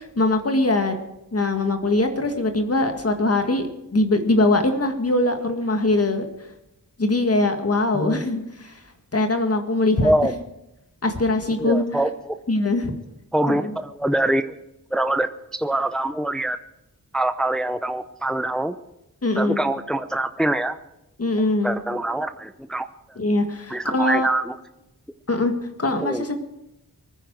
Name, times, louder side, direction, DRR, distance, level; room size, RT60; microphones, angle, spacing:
voice 1, 0.2-0.9 1.3-6.3 7.0-8.7 9.1-10.1 11.0-11.8 12.5-12.9 13.5-13.7 19.2-19.6 21.2-21.8 23.2-24.3 25.3-25.5 25.8-26.4, left 2 dB, 45° left, 6 dB, 1.8 m, -22 dB
voice 2, 10.0-10.3 11.5-12.3 13.3-14.6 14.9-16.6 17.1-18.8 19.4-20.8 21.6-22.9 23.7-24.5 26.0-26.3, right 1 dB, ahead, 9 dB, 0.6 m, -24 dB
23.5 x 10.0 x 4.7 m, 0.89 s
wide cardioid pair, 90°, 34 cm